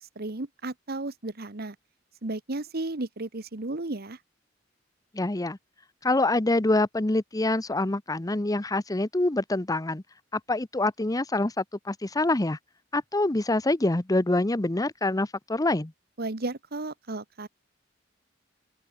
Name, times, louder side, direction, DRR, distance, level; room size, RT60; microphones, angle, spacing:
voice 1, 0.0-1.7 2.2-4.2 16.2-17.5, right 2 dB, 55° right, 1.4 m, -34 dB
voice 2, 5.1-5.6 6.0-10.0 10.3-12.6 12.9-15.9, left 2 dB, 20° left, 0.8 m, -26 dB
open air
head